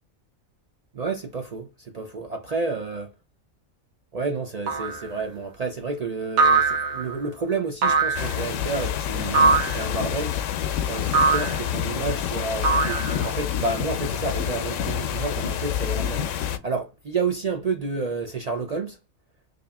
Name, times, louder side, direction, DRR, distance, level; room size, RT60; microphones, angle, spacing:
voice 1, 0.9-3.1 4.1-10.5 10.9-19.0, right 4 dB, 65° right, 0.3 m, -30 dB
sound 1, 4.7-5.1 6.4-7.2 7.8-8.4 9.3-9.9 11.1-11.6 12.6-13.4, right 4 dB, 85° right, 1.3 m, -21 dB
sound 2, 8.1-16.6, left 10 dB, 70° left, 0.9 m, -28 dB
5.0 x 2.5 x 2.2 m
omnidirectional pair, 1.4 m